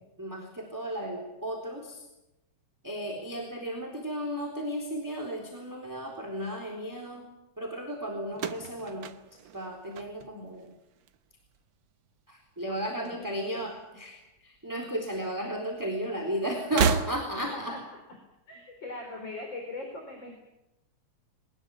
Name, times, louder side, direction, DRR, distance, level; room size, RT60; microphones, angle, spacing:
voice 1, 0.2-2.0 2.8-7.2 7.6-9.1 9.5-10.7 12.3-14.2 14.4-17.7, right 1 dB, 5° right, 2 dB, 3.7 m, -34 dB
sound 1, 8.3-10.7 11.0-11.6 12.6-13.6 13.9-14.0 15.1-15.2 16.6-17.6, right 7 dB, 65° right, 1.2 m, -32 dB
voice 2, 12.7-13.7 17.4-17.8 18.5-20.4, left 2 dB, 40° left, 2 dB, 4.6 m, -41 dB
22.5 x 20.0 x 9.0 m, 0.94 s
omnidirectional pair, 3.4 m